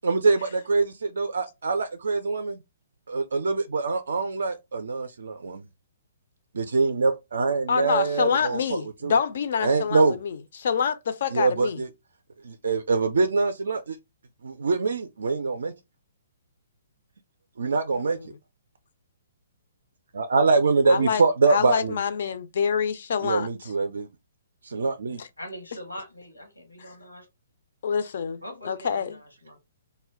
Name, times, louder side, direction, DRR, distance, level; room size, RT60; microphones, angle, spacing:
voice 1, 0.0-2.6 3.1-5.6 6.5-8.6 9.0-9.1 9.6-10.2 11.3-11.9 12.4-14.0 14.4-15.7 17.6-18.2 20.1-22.0 23.2-24.1 24.6-25.2, right 4 dB, 60° right, 0.3 m, -24 dB
voice 2, 7.7-11.8 17.9-18.3 20.9-21.2 21.5-23.5 25.2-25.3 26.8-26.9 27.8-29.2, left 6 dB, 50° left, 0.3 m, -27 dB
voice 3, 25.4-27.3 28.4-29.6, equal, 85° left, 0.9 m, -42 dB
2.1 x 2.1 x 3.4 m
figure-of-eight pair, 125°, 0 cm